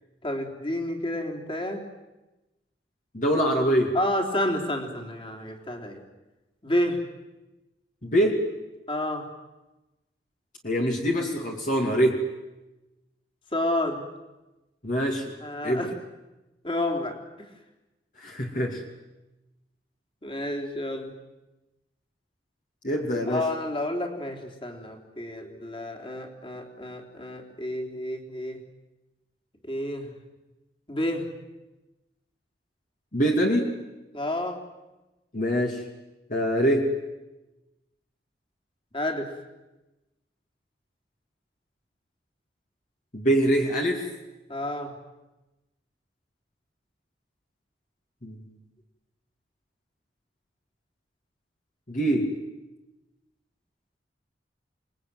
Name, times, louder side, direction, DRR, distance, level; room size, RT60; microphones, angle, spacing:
voice 1, 0.2-1.9 3.9-6.0 6.6-7.0 8.9-9.3 13.5-14.1 15.4-15.9 16.6-17.2 20.2-21.1 23.3-28.6 29.6-30.1 30.9-31.3 34.1-34.6 38.9-39.3 44.5-44.9, left 1 dB, 30° left, 2 dB, 3.7 m, -30 dB
voice 2, 3.1-3.9 8.0-8.4 10.6-12.2 14.8-15.4 15.6-15.8 18.2-18.8 22.8-23.4 33.1-33.7 35.3-35.8 36.3-36.9 43.1-44.0 48.2-48.4 51.9-52.3, equal, 45° left, 0 dB, 2.8 m, -24 dB
28.5 x 21.0 x 9.4 m, 1.1 s
head